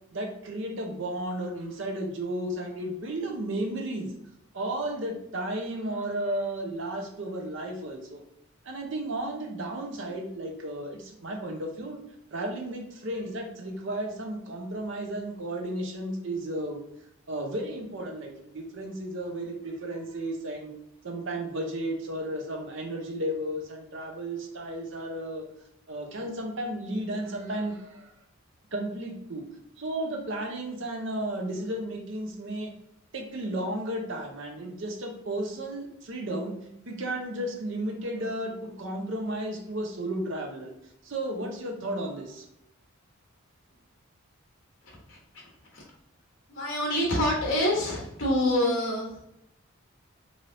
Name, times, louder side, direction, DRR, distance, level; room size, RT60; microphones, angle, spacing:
voice 1, 0.1-4.1 4.5-8.2 8.6-12.0 12.3-16.8 17.3-20.7 21.0-25.5 25.9-28.1 28.7-29.4 29.8-32.7 33.1-36.5 36.9-40.7 41.0-42.5, right 1 dB, 55° right, 2 dB, 0.6 m, -33 dB
voice 2, 44.8-45.2 45.7-45.8 46.5-49.2, left 1 dB, 55° left, -3 dB, 1.0 m, -26 dB
3.3 x 2.6 x 2.5 m, 0.76 s
head